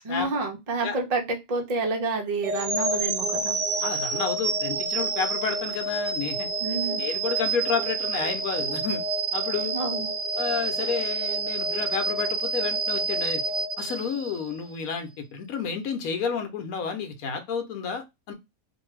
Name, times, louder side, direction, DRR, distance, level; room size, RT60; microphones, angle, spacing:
voice 1, 0.0-3.6 6.6-7.0 9.7-10.1, right 3 dB, 35° right, 2 dB, 0.7 m, -29 dB
sound 1, 2.4-14.5, right 3 dB, 60° right, 1.0 m, -28 dB
voice 2, 3.8-6.5 6.9-9.0 9.3-9.7 10.4-13.4 13.8-18.3, left 6 dB, 80° left, 6 dB, 1.1 m, -30 dB
2.7 x 2.6 x 3.1 m, 0.21 s
omnidirectional pair, 1.5 m